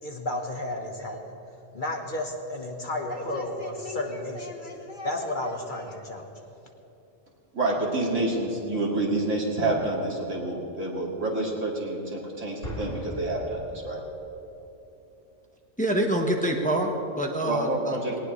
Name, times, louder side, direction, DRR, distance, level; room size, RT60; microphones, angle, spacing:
voice 1, 0.0-1.2 1.7-6.3, left 1 dB, 40° left, 1 dB, 1.5 m, -32 dB
voice 2, 7.5-14.0 17.4-18.2, right 2 dB, 75° right, -3 dB, 2.7 m, -28 dB
Explosion, 12.6-14.4, equal, 80° left, 3.1 m, -38 dB
voice 3, 15.8-18.0, right 1 dB, 5° left, 1 dB, 1.2 m, -26 dB
19.5 x 18.5 x 3.3 m, 2.9 s
omnidirectional pair, 1.3 m